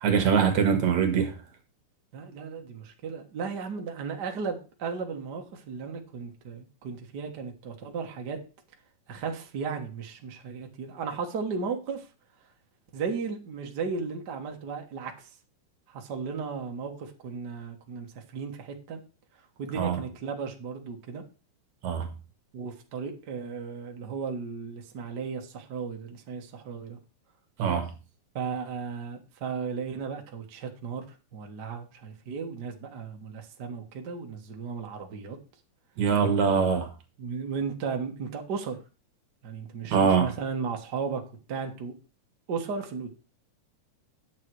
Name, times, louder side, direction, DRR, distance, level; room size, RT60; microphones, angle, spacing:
voice 1, 0.0-1.3 19.8-20.0 21.8-22.1 27.6-27.9 36.0-36.9 39.9-40.3, right 6 dB, 65° right, 2.7 m, -23 dB
voice 2, 2.1-8.4 9.1-12.1 12.9-15.3 15.9-18.1 18.3-19.0 19.6-21.2 22.5-27.0 28.3-31.0 31.3-35.4 37.2-38.8 39.4-41.2 41.5-41.9 42.5-43.1, right 5 dB, 45° right, 1.4 m, -35 dB
10.0 x 7.3 x 4.7 m
omnidirectional pair, 3.7 m